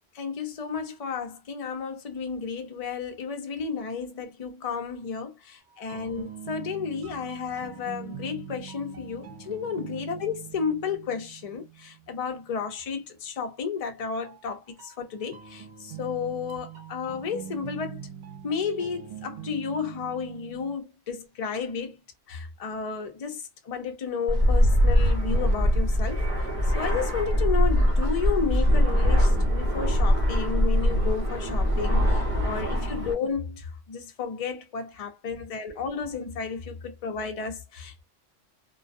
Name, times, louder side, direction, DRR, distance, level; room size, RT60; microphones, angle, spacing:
voice 1, 0.1-18.0 18.4-22.0 22.3-26.2 26.7-38.0, left 6 dB, 45° left, 0.5 m, -32 dB
sound 1, 5.7-12.3 14.2-20.8, right 9 dB, 70° right, 0.9 m, -43 dB
Fixed-wing aircraft airplane, 24.3-33.1, equal, 30° right, 0.8 m, -22 dB
2.3 x 2.2 x 2.5 m
omnidirectional pair, 1.3 m